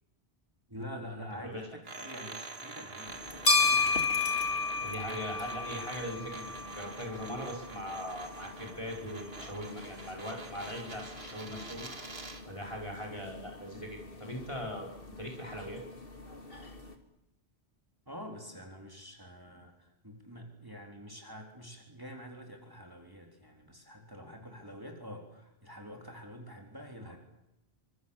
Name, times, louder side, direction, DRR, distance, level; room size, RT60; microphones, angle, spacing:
voice 1, 0.7-4.0 18.1-27.2, equal, 20° right, 2 dB, 3.8 m, -46 dB
sound 1, 1.8-12.5, right 3 dB, 65° right, 2.3 m, -46 dB
sound 2, 3.1-16.9, left 3 dB, 60° left, 2.6 m, -35 dB
voice 2, 4.8-11.9 12.5-15.8, equal, 30° left, 0 dB, 4.9 m, -40 dB
27.5 x 25.0 x 7.3 m, 0.84 s
omnidirectional pair, 1.1 m